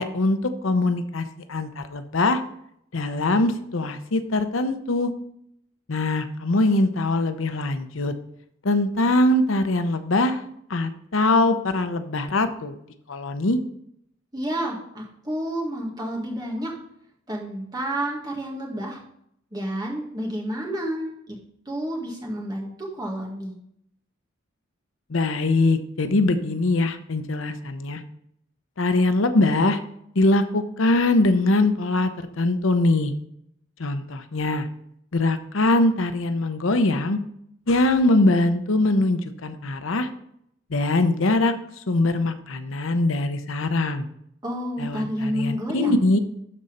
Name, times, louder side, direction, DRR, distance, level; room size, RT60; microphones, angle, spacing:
voice 1, 0.0-2.4 2.9-5.1 5.9-8.1 8.6-10.4 10.7-12.7 13.1-13.6 25.1-28.0 28.8-29.8 30.1-33.1 33.8-34.7 35.1-37.2 37.7-40.1 40.7-41.5 41.9-44.0 44.8-46.2, left 2 dB, 80° left, 9 dB, 0.8 m, -22 dB
voice 2, 14.3-16.7 17.3-19.0 19.5-21.4 21.7-23.5 44.4-46.1, equal, 20° right, -2 dB, 1.8 m, -30 dB
12.0 x 4.2 x 5.1 m, 0.73 s
head